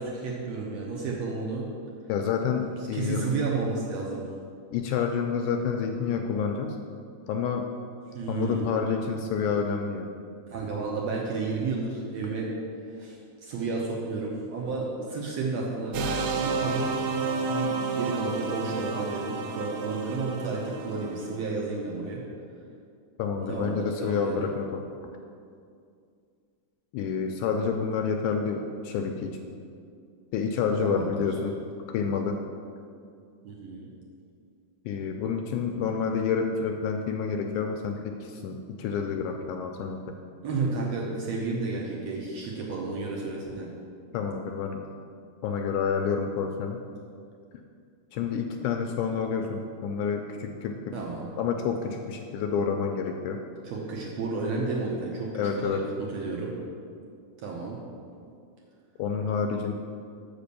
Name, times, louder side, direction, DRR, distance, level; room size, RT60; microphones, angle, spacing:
voice 1, 0.0-1.7 2.9-4.2 8.1-8.7 10.5-12.5 12.9-17.0 17.5-22.2 23.5-24.5 30.8-31.2 33.4-33.9 40.4-43.7 50.9-51.3 53.6-55.3 55.6-55.8 56.1-56.5 57.4-57.8, right 3 dB, 70° right, -3 dB, 1.7 m, -32 dB
voice 2, 2.1-3.3 4.7-6.8 7.3-7.7 8.3-10.1 23.2-24.8 26.9-29.4 30.3-31.6 31.9-32.4 34.9-40.0 44.1-44.9 45.4-46.8 48.1-50.7 51.4-53.4 55.4-55.8 59.0-59.7, left 6 dB, 80° left, 4 dB, 1.9 m, -28 dB
sound 1, 15.9-21.3, right 4 dB, 85° right, 2.4 m, -31 dB
6.9 x 5.1 x 6.8 m, 2.3 s
omnidirectional pair, 3.8 m